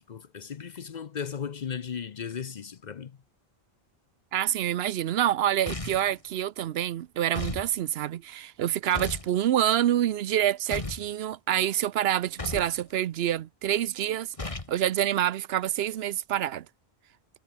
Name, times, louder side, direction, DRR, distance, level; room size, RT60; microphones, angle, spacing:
voice 1, 0.0-3.1, left 7 dB, 50° left, 0.7 m, -36 dB
voice 2, 4.3-14.3 14.7-16.7, right 11 dB, 75° right, 0.8 m, -27 dB
sound 1, 5.7-6.1 7.3-7.7 8.9-9.3 10.7-11.1 12.4-12.8 14.4-14.8, left 3 dB, 30° left, 1.8 m, -35 dB
omnidirectional pair, 1.1 m